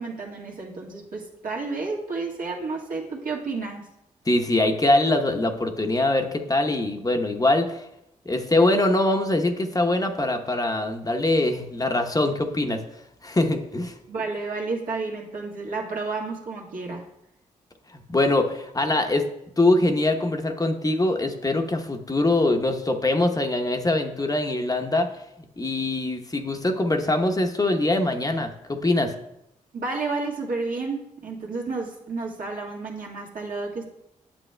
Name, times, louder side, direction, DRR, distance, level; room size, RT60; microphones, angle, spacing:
voice 1, 0.0-3.9 14.1-17.1 29.7-33.9, right 3 dB, 70° right, -2 dB, 1.6 m, -31 dB
voice 2, 4.3-7.8 8.3-12.8 13.2-13.9 17.9-19.3 19.6-25.1 25.6-29.1, left 2 dB, 25° left, 4 dB, 0.9 m, -23 dB
8.7 x 7.3 x 2.2 m, 0.84 s
supercardioid pair, 50°, 15 cm